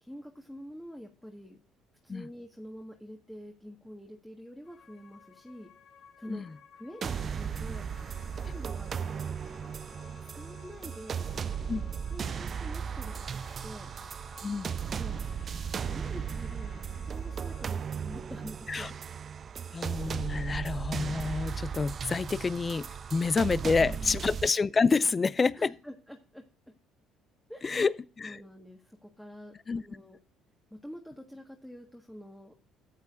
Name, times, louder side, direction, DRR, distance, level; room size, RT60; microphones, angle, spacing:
voice 1, 0.0-1.6 2.0-5.7 6.2-6.5 6.7-8.0 8.4-9.4 10.2-13.9 14.7-15.2 15.8-19.0 23.8-24.3 25.5-26.7 27.5-28.0 28.2-30.2 30.7-32.5, equal, 5° left, 1.6 m, -47 dB
sound 1, 4.7-17.7, left 7 dB, 65° left, 1.9 m, -57 dB
sound 2, 7.0-24.5, right 7 dB, 45° right, 0.4 m, -36 dB
voice 2, 14.4-14.7 18.7-18.9 19.7-25.7 27.6-28.4 29.7-29.8, left 4 dB, 30° left, 0.4 m, -28 dB
13.0 x 8.3 x 2.6 m
supercardioid pair, 80°, 0 cm